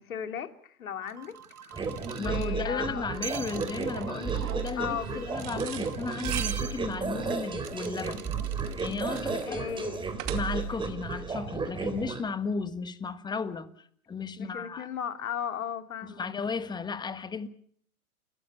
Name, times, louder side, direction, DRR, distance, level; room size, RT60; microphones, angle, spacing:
voice 1, 0.0-1.9 2.1-3.0 4.7-5.3 9.2-10.1 14.4-16.3, left 8 dB, 65° left, 3.0 m, -36 dB
sound 1, 1.0-9.4, right 8 dB, 80° right, 1.7 m, -43 dB
sound 2, 1.7-12.2, right 5 dB, 10° right, 3.8 m, -33 dB
voice 2, 2.1-8.2 8.8-9.7 10.3-14.9 16.0-17.5, left 4 dB, 10° left, 1.5 m, -35 dB
sound 3, 5.4-10.8, right 15 dB, 35° right, 2.6 m, -41 dB
29.5 x 18.0 x 7.2 m
hypercardioid pair, 120°, 45 cm